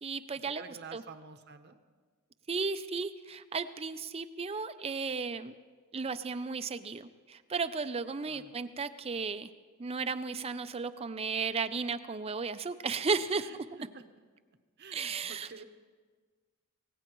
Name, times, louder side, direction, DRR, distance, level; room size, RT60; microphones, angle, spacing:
voice 1, 0.0-1.0 2.5-5.5 5.9-9.5 9.8-13.5 14.9-15.5, right 4 dB, 25° right, 11 dB, 0.5 m, -34 dB
voice 2, 0.6-1.8 8.3-8.5 13.3-13.6 13.9-14.0 14.8-15.6, right 5 dB, 50° right, 8 dB, 0.8 m, -49 dB
24.5 x 18.0 x 3.1 m, 1.5 s
head